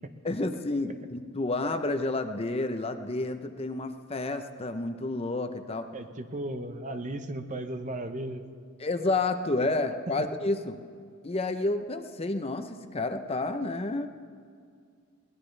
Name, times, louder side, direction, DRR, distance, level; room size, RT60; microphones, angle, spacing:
voice 1, 0.2-5.9 8.8-10.8 11.2-14.1, left 2 dB, 30° left, 8 dB, 0.7 m, -30 dB
voice 2, 5.9-8.4, right 1 dB, 35° right, 7 dB, 0.9 m, -35 dB
22.0 x 18.5 x 3.3 m, 2.1 s
head